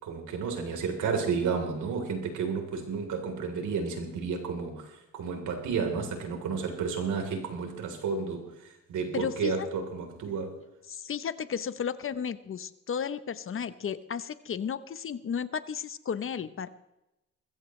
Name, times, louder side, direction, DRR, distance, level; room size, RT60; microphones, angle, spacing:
voice 1, 0.0-4.9 5.1-8.5 8.9-10.5, right 5 dB, 75° right, 3 dB, 3.8 m, -31 dB
voice 2, 9.1-9.7 10.9-16.7, left 7 dB, 45° left, 13 dB, 0.9 m, -33 dB
21.5 x 15.0 x 3.3 m, 0.90 s
cardioid pair, 90°, 30 cm